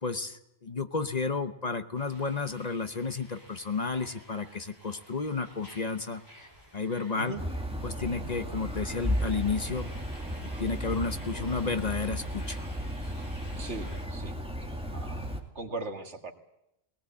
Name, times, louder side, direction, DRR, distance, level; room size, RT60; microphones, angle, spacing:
voice 1, 0.0-6.5 6.7-7.3 7.8-9.9 10.4-12.6, left 4 dB, 40° left, 9 dB, 1.0 m, -32 dB
sound 1, 1.9-14.1, equal, 20° left, 4.0 m, -52 dB
sound 2, 7.3-15.4, equal, 5° right, 2.4 m, -34 dB
voice 2, 13.6-14.4 14.9-15.2 15.6-16.3, right 3 dB, 80° right, 5 dB, 2.3 m, -38 dB
20.0 x 18.5 x 8.6 m, 0.84 s
omnidirectional pair, 1.2 m